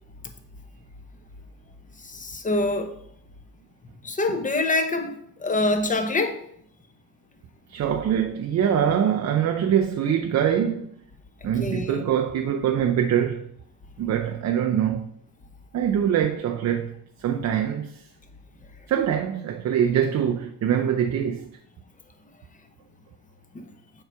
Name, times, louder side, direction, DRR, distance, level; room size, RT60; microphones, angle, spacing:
voice 1, 2.0-2.9 4.0-6.4 11.4-12.0 23.5-23.7, left 2 dB, 20° left, 0.8 m, -25 dB
voice 2, 7.7-10.9 11.4-13.5 14.0-15.1 15.7-18.0 18.9-21.5, right 9 dB, 40° right, 0.5 m, -24 dB
7.4 x 4.8 x 4.6 m
cardioid pair, 125°, 43 cm